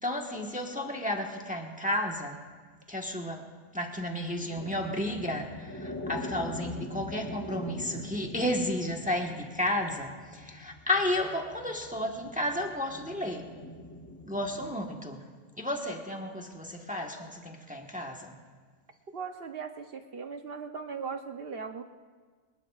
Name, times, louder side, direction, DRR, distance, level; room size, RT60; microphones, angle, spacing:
voice 1, 0.0-2.4 2.9-3.4 3.7-13.5 14.2-15.2 15.6-18.3, left 1 dB, 5° right, 1 dB, 1.2 m, -32 dB
sound 1, 4.5-14.8, left 1 dB, 15° left, 1.0 m, -42 dB
voice 2, 19.1-21.8, right 5 dB, 50° right, 6 dB, 0.9 m, -38 dB
26.5 x 19.5 x 2.5 m, 1.5 s
omnidirectional pair, 1.5 m